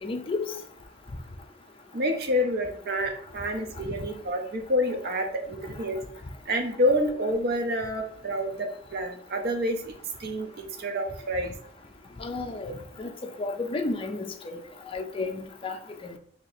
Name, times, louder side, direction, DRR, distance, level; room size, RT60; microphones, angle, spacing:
voice 1, 0.0-0.4 3.8-3.9 12.2-14.6 14.9-15.8 16.0-16.2, left 3 dB, 30° left, 4 dB, 0.4 m, -32 dB
voice 2, 1.9-6.0 6.5-9.9 10.2-11.5, equal, 60° right, 4 dB, 0.6 m, -28 dB
2.8 x 2.8 x 4.1 m, 0.63 s
head